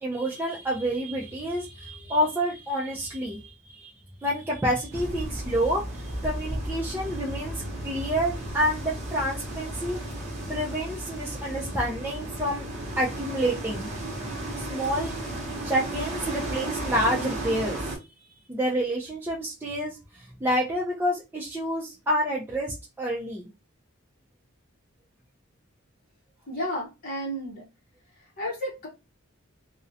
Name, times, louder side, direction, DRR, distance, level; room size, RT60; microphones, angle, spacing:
voice 1, 0.0-3.9 4.2-10.0 10.5-12.7 13.0-13.9 14.6-15.1 15.6-17.8 18.5-20.0 20.4-23.5, equal, 10° right, -5 dB, 0.4 m, -28 dB
sound 1, 4.9-18.0, right 1 dB, 35° right, 0.8 m, -34 dB
voice 2, 26.5-27.6 28.4-28.9, equal, 45° left, -4 dB, 0.7 m, -32 dB
2.5 x 2.0 x 2.6 m, 0.27 s
head